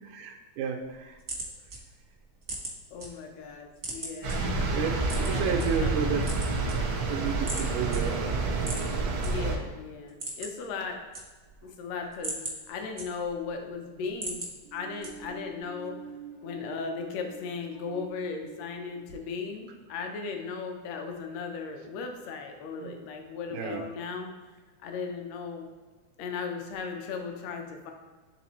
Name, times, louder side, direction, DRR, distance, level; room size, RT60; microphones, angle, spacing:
voice 1, 0.0-1.2 4.6-6.3 7.1-8.4 9.2-9.3 22.7-22.9 23.5-23.8, right 6 dB, 90° right, 2 dB, 2.0 m, -32 dB
sound 1, 1.0-3.1 3.4-4.4 5.0-5.7 6.1-7.1 7.5-7.7 7.9-8.0 8.6-9.3 9.6-9.7 10.0-10.7 10.9-11.6 12.0-13.5 13.9-14.5 15.0-15.5, right 2 dB, 55° right, 0.8 m, -38 dB
voice 2, 2.9-4.4 5.1-6.0 9.2-11.0 11.6-12.4 12.7-14.5 14.7-16.0 16.4-24.3 24.8-25.7 26.2-27.9, left 5 dB, 70° left, 3 dB, 1.8 m, -37 dB
sound 2, 4.2-9.6, right 3 dB, 70° right, 1.2 m, -28 dB
sound 3, 14.6-20.3, right 4 dB, 55° left, 0.9 m, -46 dB
9.2 x 3.7 x 3.0 m, 1.3 s
omnidirectional pair, 3.4 m